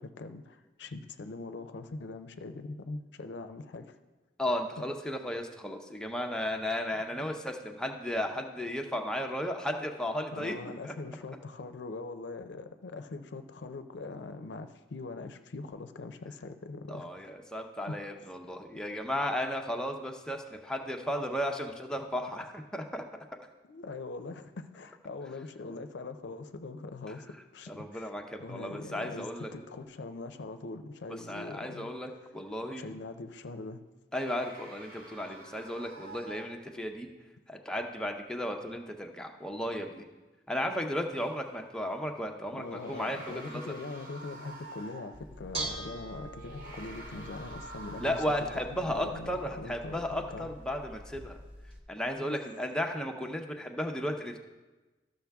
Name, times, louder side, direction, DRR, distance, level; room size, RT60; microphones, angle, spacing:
voice 1, 0.0-4.0 10.3-17.1 17.9-18.0 23.6-27.3 27.5-28.0 28.4-31.9 32.8-33.8 42.6-50.5, left 3 dB, 75° left, 0.5 m, -42 dB
voice 2, 4.4-10.6 10.8-10.9 16.9-23.0 27.7-29.5 31.3-32.8 34.1-37.1 37.5-40.1 40.5-43.8 48.0-51.4 51.9-54.4, equal, 5° left, 0.6 m, -34 dB
sound 1, 34.1-36.9 41.1-41.3 42.6-45.2 46.3-48.8, right 2 dB, 65° right, 2.9 m, -48 dB
Bell / Dishes pots and pans, 45.1-51.8, right 2 dB, 30° right, 1.0 m, -44 dB
13.0 x 6.5 x 3.5 m
head